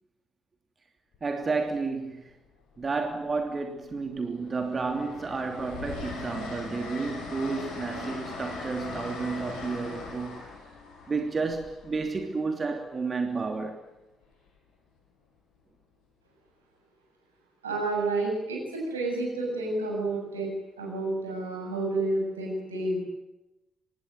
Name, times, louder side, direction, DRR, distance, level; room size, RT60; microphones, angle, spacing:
Train, 1.1-1.4 2.7-3.5 3.9-12.6 14.2-14.5, left 4 dB, 65° left, 6.8 m, -40 dB
voice 1, 1.2-2.3 2.8-10.5 11.1-13.8, right 4 dB, 35° right, 3.1 m, -31 dB
voice 2, 17.6-20.5 20.8-23.0, right 2 dB, 80° right, 7.7 m, -30 dB
25.0 x 20.5 x 9.2 m
figure-of-eight pair, 40°, 0 cm